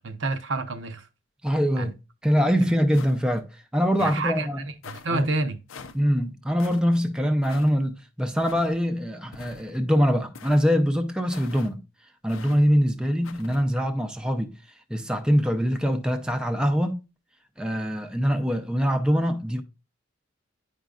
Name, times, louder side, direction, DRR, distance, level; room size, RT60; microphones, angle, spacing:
voice 1, 0.0-1.1 1.8-1.9 4.0-4.5 4.9-5.6, right 2 dB, 70° right, 0.8 m, -28 dB
voice 2, 1.4-2.0 2.2-4.6 5.1-5.3 5.9-11.8 12.2-14.5 14.9-17.0 17.6-19.6, equal, 5° right, 0.5 m, -23 dB
sound 1, 2.9-3.4 3.9-4.3 4.8-5.1 5.7-6.0 6.6-6.8 7.4-7.7 8.4-8.7 9.3-9.8 10.3-10.7 11.3-11.7 12.3-12.6 13.2-13.6, left 5 dB, 90° left, 0.6 m, -43 dB
9.2 x 5.1 x 2.4 m
head